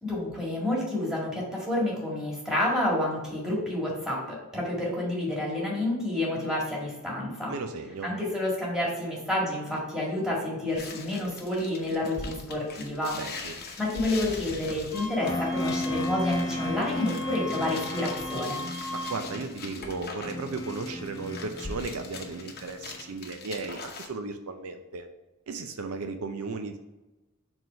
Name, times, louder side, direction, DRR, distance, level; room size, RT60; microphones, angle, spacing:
voice 1, 0.0-7.5 8.0-13.2 13.8-18.6, left 1 dB, 5° right, -4 dB, 1.7 m, -29 dB
voice 2, 7.5-8.1 13.1-13.6 18.9-25.1 25.5-26.8, right 3 dB, 70° right, 7 dB, 0.5 m, -35 dB
sound 1, 10.8-24.1, left 4 dB, 45° left, 0.9 m, -42 dB
Wind instrument woodwind instrument, 14.9-19.2, left 1 dB, 35° right, 1.9 m, -39 dB
sound 2, 15.2-23.0, left 1 dB, 15° left, 0.4 m, -34 dB
4.8 x 3.9 x 5.1 m, 1.1 s
head